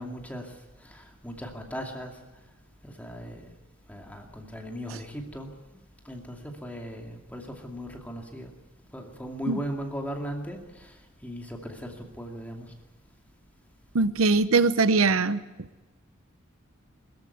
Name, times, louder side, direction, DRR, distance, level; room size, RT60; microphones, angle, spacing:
voice 1, 0.0-2.2 2.8-3.5 3.9-5.5 6.0-8.5 8.9-12.7, equal, 10° left, 1 dB, 2.5 m, -38 dB
voice 2, 13.9-15.4, right 3 dB, 90° right, 13 dB, 0.9 m, -21 dB
22.5 x 14.0 x 9.4 m, 1.1 s
head